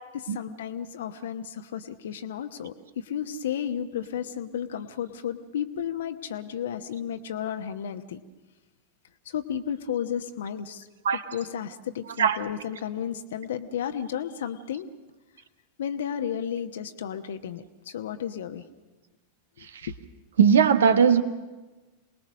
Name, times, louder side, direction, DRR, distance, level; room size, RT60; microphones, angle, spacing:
voice 1, 0.3-8.2 9.2-14.9 15.8-18.6 19.6-19.7, left 9 dB, 60° left, 8 dB, 1.0 m, -33 dB
voice 2, 20.4-21.2, right 7 dB, 65° right, 11 dB, 1.3 m, -18 dB
27.5 x 20.0 x 6.4 m, 1.2 s
figure-of-eight pair, 90°, 0 cm